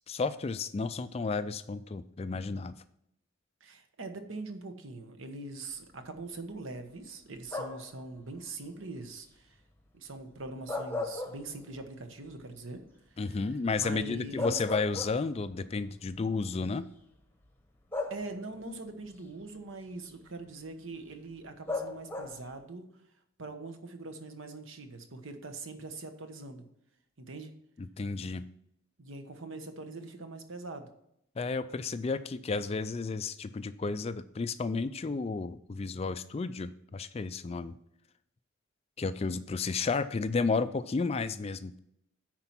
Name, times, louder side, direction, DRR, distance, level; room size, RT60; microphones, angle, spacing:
voice 1, 0.1-2.7 13.2-16.8 27.8-28.4 31.4-37.8 39.0-41.8, left 4 dB, 30° left, 13 dB, 0.3 m, -32 dB
voice 2, 3.6-9.6 9.9-12.8 13.1-13.4 13.8-14.6 18.1-22.9 23.4-26.6 27.2-27.5 29.0-30.9, right 2 dB, 70° right, 7 dB, 1.2 m, -42 dB
sound 1, 7.5-8.0 10.5-11.9 12.3-12.4 13.9-14.0 14.4-15.5 16.5-16.7 17.9-18.6 21.7-22.5, left 2 dB, 10° left, 0.9 m, -36 dB
9.7 x 4.5 x 5.9 m, 0.75 s
head